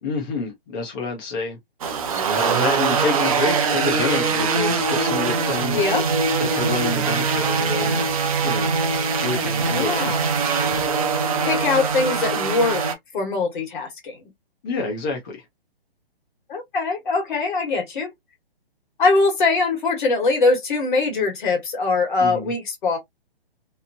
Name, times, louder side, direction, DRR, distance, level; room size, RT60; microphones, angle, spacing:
voice 1, 0.0-1.6 2.0-5.8 6.4-8.1 8.4-8.8 9.2-10.2 14.6-15.5 22.2-22.5, left 3 dB, 20° left, 0.5 m, -28 dB
sound 1, 1.8-12.9, right 5 dB, 35° right, 0.6 m, -22 dB
voice 2, 5.7-6.0 9.7-10.3 11.4-12.8 13.1-14.2 16.5-18.1 19.0-23.0, left 3 dB, 50° left, 1.3 m, -22 dB
2.9 x 2.1 x 2.4 m
hypercardioid pair, 145°, 31 cm